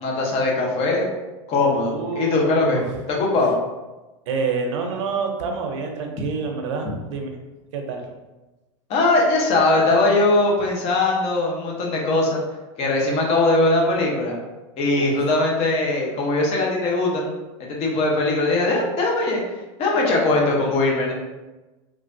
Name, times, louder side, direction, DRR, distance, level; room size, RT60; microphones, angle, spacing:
voice 1, 0.0-1.1 1.5-2.8 3.1-3.5 8.9-12.4 12.8-14.4 14.8-17.3 17.7-19.4 19.8-21.1, left 2 dB, 40° left, -2 dB, 0.8 m, -20 dB
voice 2, 1.9-2.9 4.3-7.4 7.7-8.0 14.9-15.2, right 5 dB, 70° right, 3 dB, 0.6 m, -27 dB
3.2 x 2.4 x 2.6 m, 1.1 s
hypercardioid pair, 115°, 16 cm